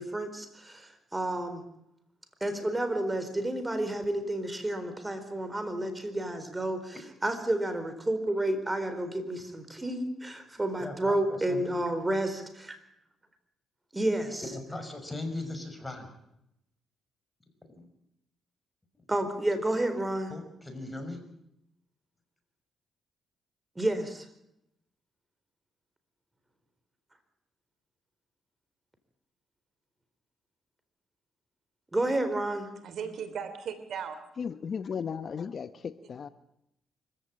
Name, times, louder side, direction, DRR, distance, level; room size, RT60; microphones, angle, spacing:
voice 1, 0.0-1.6 2.4-7.0 7.2-12.8 13.9-14.4 19.1-20.3 23.8-24.3 31.9-32.7, right 1 dB, 15° right, 9 dB, 4.2 m, -30 dB
voice 2, 10.8-11.8 14.4-16.1 17.7-17.9 20.3-21.2, left 2 dB, 15° left, 6 dB, 5.9 m, -39 dB
voice 3, 32.8-34.2 36.0-36.1, right 7 dB, 65° right, 11 dB, 3.0 m, -37 dB
voice 4, 34.4-36.3, left 6 dB, 50° left, 12 dB, 0.9 m, -35 dB
25.0 x 15.5 x 8.9 m, 0.81 s
cardioid pair, 85°, 0 cm